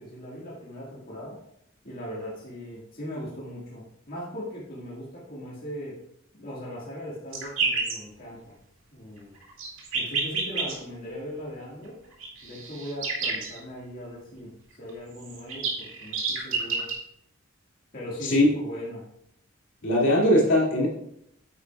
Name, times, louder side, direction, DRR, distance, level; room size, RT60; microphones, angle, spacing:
voice 1, 0.0-1.4 1.8-6.0 6.3-8.6 8.9-9.3 9.9-12.0 12.4-16.9 17.9-19.1, equal, 45° left, -6 dB, 1.8 m, -39 dB
sound 1, 7.3-7.9 9.4-10.7 12.2-13.6 14.9-15.0 15.1-16.9, right 4 dB, 80° right, 2.2 m, -29 dB
voice 2, 19.8-20.9, left 1 dB, 65° left, -4 dB, 2.4 m, -20 dB
9.4 x 8.7 x 2.3 m, 0.76 s
head